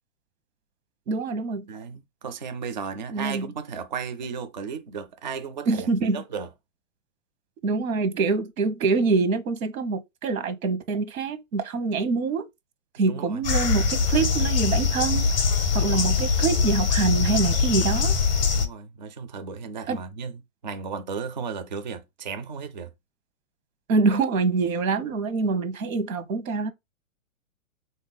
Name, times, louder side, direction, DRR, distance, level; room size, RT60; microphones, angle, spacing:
voice 1, 1.1-1.6 3.1-3.5 5.7-6.2 7.6-12.4 13.0-15.3 15.7-18.1 19.9-20.0 23.9-26.7, right 4 dB, 85° right, 1.0 m, -25 dB
voice 2, 1.7-6.5 13.0-13.4 15.8-16.1 18.5-22.9, right 6 dB, 35° right, 0.4 m, -35 dB
sound 1, 13.4-18.7, left 5 dB, 35° left, 0.5 m, -23 dB
3.8 x 2.7 x 3.8 m
hypercardioid pair, 175°, 40 cm